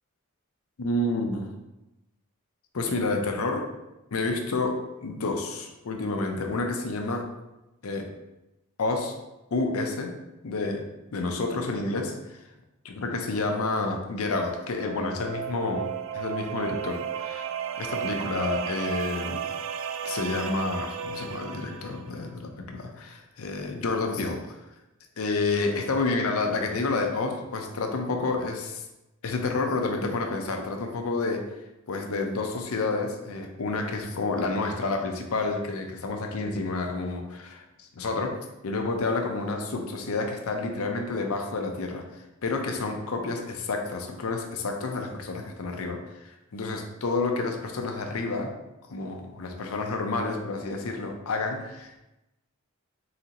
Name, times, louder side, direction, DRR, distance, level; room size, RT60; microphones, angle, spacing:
voice 1, 0.8-1.5 2.7-3.7 4.1-7.3 7.8-8.1 8.8-9.2 9.5-10.2 10.4-12.4 12.9-17.5 17.8-19.5 20.0-24.6 25.2-28.8 29.2-31.5 31.9-48.6 48.9-52.0, left 3 dB, 85° left, 3 dB, 0.6 m, -29 dB
sound 1, 14.4-22.1, right 8 dB, 65° right, 0.3 m, -34 dB
4.1 x 3.9 x 2.8 m, 0.96 s
head